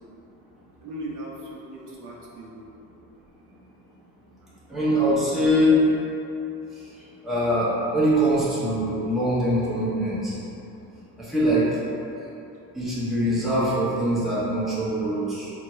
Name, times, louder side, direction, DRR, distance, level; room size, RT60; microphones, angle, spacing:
voice 1, 0.8-2.7 4.9-5.0, right 1 dB, 60° right, -4 dB, 0.7 m, -38 dB
voice 2, 4.7-5.8 7.2-10.4 11.2-11.7 12.7-15.5, equal, ahead, -10 dB, 0.8 m, -23 dB
5.0 x 2.3 x 3.0 m, 2.8 s
cardioid pair, 140°, 35 cm